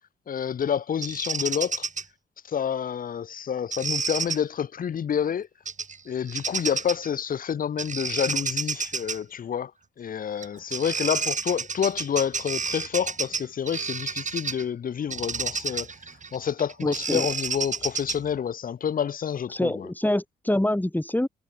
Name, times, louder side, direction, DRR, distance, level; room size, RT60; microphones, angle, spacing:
voice 1, 0.3-1.9 2.4-5.5 6.1-9.7 10.0-15.9 16.3-19.9, left 8 dB, 50° left, 1.0 m, -28 dB
Bird vocalization bird call bird song, 1.0-2.0 3.7-4.4 5.7-6.0 6.3-7.1 7.8-9.2 10.4-10.5 10.7-14.6 15.1-18.4, right 5 dB, 45° right, 6.7 m, -30 dB
voice 2, 16.8-17.3 19.5-21.3, left 1 dB, 10° left, 6.4 m, -25 dB
hypercardioid pair, 45°, 18 cm